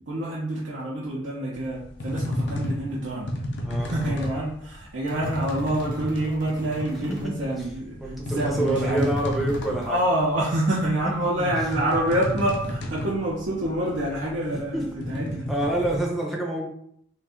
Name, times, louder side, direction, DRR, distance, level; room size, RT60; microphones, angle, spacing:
voice 1, 0.1-3.3 3.8-8.1 8.3-9.1 9.9-15.5, right 1 dB, 80° right, -5 dB, 0.6 m, -27 dB
sound 1, 1.5-16.0, left 1 dB, 65° left, 0.5 m, -32 dB
voice 2, 3.6-4.2 7.0-7.3 8.0-10.0 14.7-14.9 15.5-16.7, right 1 dB, ahead, -2 dB, 0.5 m, -27 dB
sound 2, 5.1-7.3 9.0-10.0, equal, 45° right, 0.8 m, -45 dB
2.5 x 2.2 x 3.5 m, 0.68 s
head